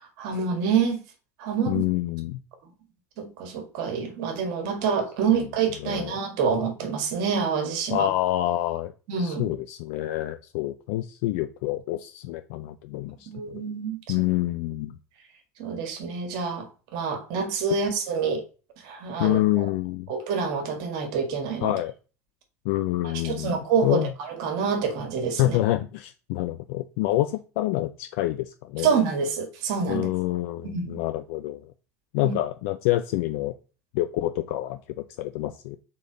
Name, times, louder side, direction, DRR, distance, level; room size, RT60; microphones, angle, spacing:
voice 1, 0.2-1.0 1.4-1.8 3.2-8.1 9.1-9.5 13.3-14.0 15.6-16.7 16.9-18.4 18.8-19.4 20.1-21.7 23.0-24.0 24.4-25.6 28.8-30.1 30.6-31.0 32.2-32.3, right 6 dB, 55° right, 1.7 m, -27 dB
voice 2, 1.7-2.4 5.8-6.2 7.9-8.9 9.2-13.3 14.1-15.0 19.2-20.1 21.6-21.9 22.6-24.1 25.4-28.9 29.9-31.7 32.1-33.5 33.9-35.8, left 15 dB, 60° left, 0.5 m, -27 dB
7.0 x 4.2 x 4.0 m
figure-of-eight pair, 70°, 9 cm